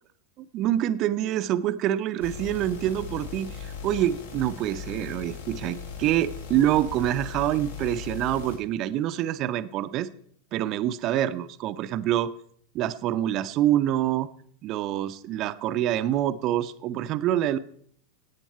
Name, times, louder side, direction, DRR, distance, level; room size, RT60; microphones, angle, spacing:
voice 1, 0.4-10.1 10.5-12.3 12.7-14.3 14.6-17.6, right 12 dB, 35° right, 13 dB, 0.7 m, -26 dB
sound 1, 2.2-8.6, left 6 dB, 60° left, 2.9 m, -38 dB
16.5 x 9.1 x 4.5 m, 0.62 s
figure-of-eight pair, 90°, 0 cm